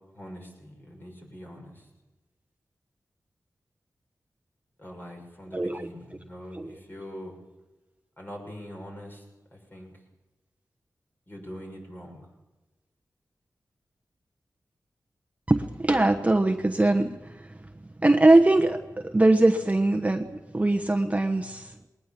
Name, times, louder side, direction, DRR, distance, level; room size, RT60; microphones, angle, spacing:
voice 1, 0.1-1.9 4.8-7.4 8.2-9.2 9.5-9.9 11.3-12.2, equal, 30° left, 1 dB, 6.5 m, -43 dB
voice 2, 5.5-5.9 6.5-6.7 15.5-17.6 18.0-21.7, right 2 dB, 20° right, 6 dB, 1.1 m, -22 dB
20.5 x 19.0 x 7.2 m, 1.1 s
wide cardioid pair, 80°, 6 cm